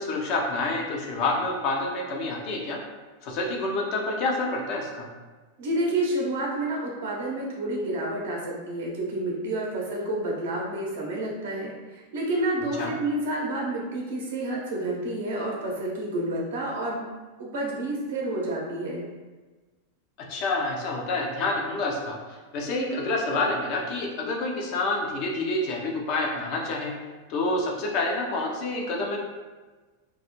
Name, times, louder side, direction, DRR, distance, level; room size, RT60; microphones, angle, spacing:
voice 1, 0.0-2.8 3.2-5.1 12.8-12.9 20.3-22.2 22.5-26.9 27.3-29.2, left 2 dB, 50° left, 0 dB, 0.5 m, -28 dB
voice 2, 5.6-17.1 17.4-19.1, right 1 dB, 65° right, -3 dB, 0.6 m, -29 dB
2.2 x 2.0 x 2.9 m, 1.3 s
hypercardioid pair, 100°, 0 cm